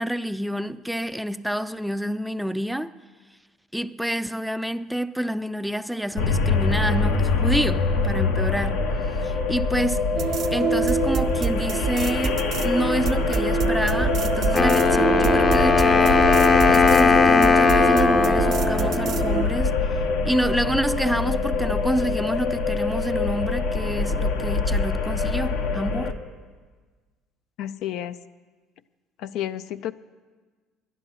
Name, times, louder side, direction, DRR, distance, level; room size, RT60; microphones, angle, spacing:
voice 1, 0.0-2.9 3.7-10.0 10.5-16.3 16.7-19.8 20.2-26.1, right 1 dB, ahead, 0.4 m, -28 dB
sound 1, 6.2-26.1, left 4 dB, 85° left, 1.1 m, -25 dB
sound 2, 10.2-19.4, right 7 dB, 55° right, 0.6 m, -27 dB
Wind instrument woodwind instrument, 14.5-19.5, left 4 dB, 35° left, 0.7 m, -19 dB
voice 2, 27.6-28.2 29.2-29.9, left 11 dB, 70° left, 0.4 m, -31 dB
10.5 x 10.0 x 6.7 m
supercardioid pair, 85°, 0 cm